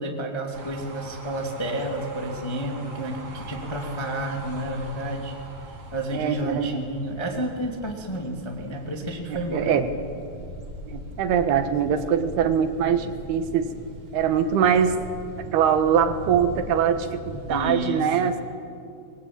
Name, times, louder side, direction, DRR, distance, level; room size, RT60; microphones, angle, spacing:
voice 1, 0.0-5.3 5.7-9.7 17.5-18.3, right 1 dB, 10° left, 1 dB, 1.3 m, -31 dB
sound 1, 0.5-17.7, right 1 dB, 35° right, 3.4 m, -40 dB
voice 2, 6.1-6.8 9.3-9.9 10.9-13.7 14.1-15.0 15.5-18.4, right 8 dB, 70° right, 8 dB, 3.2 m, -23 dB
26.0 x 22.0 x 8.8 m, 2.5 s
omnidirectional pair, 5.0 m